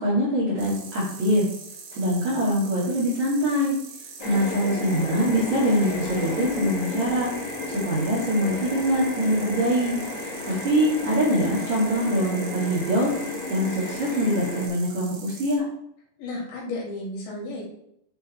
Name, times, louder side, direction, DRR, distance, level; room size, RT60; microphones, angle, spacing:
voice 1, 0.0-1.5 1.9-3.8 4.2-13.1 13.5-15.6, equal, 50° right, -7 dB, 2.5 m, -24 dB
sound 1, 0.6-15.6, right 5 dB, 90° right, 4.4 m, -42 dB
sound 2, 4.2-14.7, left 3 dB, 85° left, 1.2 m, -32 dB
voice 2, 16.2-17.6, left 2 dB, 65° left, -4 dB, 4.5 m, -33 dB
10.5 x 3.7 x 4.3 m, 0.74 s
omnidirectional pair, 5.7 m